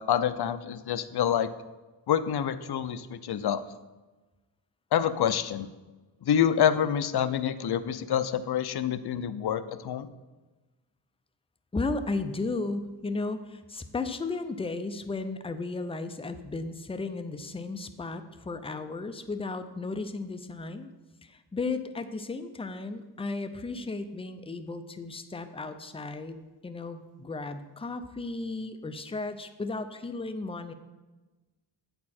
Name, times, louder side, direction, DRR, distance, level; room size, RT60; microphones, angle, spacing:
voice 1, 0.0-1.5 2.1-3.6 4.9-5.7 6.2-10.1, left 9 dB, 60° left, 13 dB, 0.6 m, -27 dB
voice 2, 11.7-20.9 21.2-30.7, left 3 dB, 15° left, 9 dB, 0.5 m, -34 dB
8.4 x 6.8 x 4.2 m, 1.2 s
wide cardioid pair, 90°, 45 cm